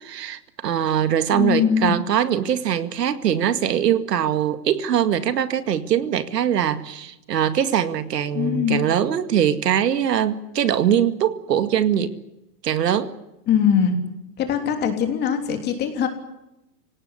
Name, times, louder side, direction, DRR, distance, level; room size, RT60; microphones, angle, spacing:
voice 1, 0.0-12.1 12.6-13.1, right 9 dB, 80° right, 11 dB, 2.2 m, -22 dB
voice 2, 1.3-2.0 8.3-8.8 13.5-13.9 14.4-16.1, left 8 dB, 20° left, 6 dB, 3.3 m, -21 dB
26.0 x 18.0 x 9.8 m, 0.94 s
hypercardioid pair, 160°, 48 cm